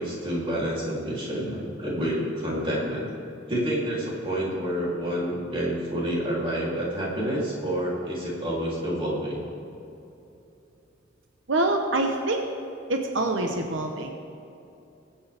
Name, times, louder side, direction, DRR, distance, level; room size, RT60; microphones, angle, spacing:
voice 1, 0.0-3.0 3.5-9.4 13.4-13.6, equal, 30° right, -5 dB, 3.2 m, -28 dB
voice 2, 11.5-12.5 12.9-14.1, right 2 dB, 85° right, 3 dB, 1.0 m, -25 dB
21.5 x 8.6 x 3.5 m, 2.8 s
head